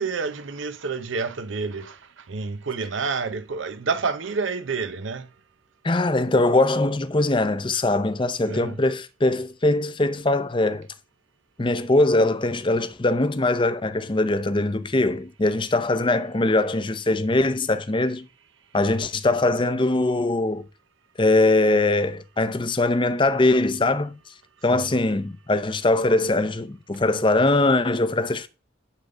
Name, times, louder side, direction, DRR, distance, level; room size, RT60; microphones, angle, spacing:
voice 1, 0.0-5.3 8.4-8.8 24.7-24.9, right 4 dB, 75° right, 0.7 m, -29 dB
voice 2, 5.8-10.9 11.6-18.3 18.7-20.6 21.2-24.2 24.6-28.5, left 2 dB, 25° left, 0.6 m, -22 dB
11.5 x 3.8 x 6.6 m
head